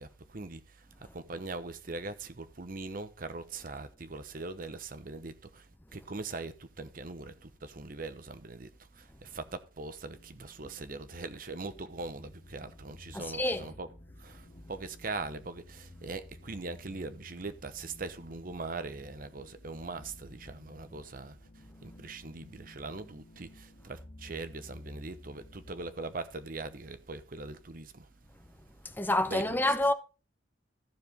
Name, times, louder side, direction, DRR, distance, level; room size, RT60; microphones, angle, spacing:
voice 1, 0.0-13.9 14.2-28.1 29.2-29.7, right 3 dB, 50° right, 0.9 m, -41 dB
atmospheric-loop, 10.1-25.9, left 1 dB, 40° left, 1.3 m, -53 dB
voice 2, 13.1-13.6 29.0-29.9, left 1 dB, 10° left, 0.7 m, -27 dB
14.0 x 5.0 x 5.0 m
head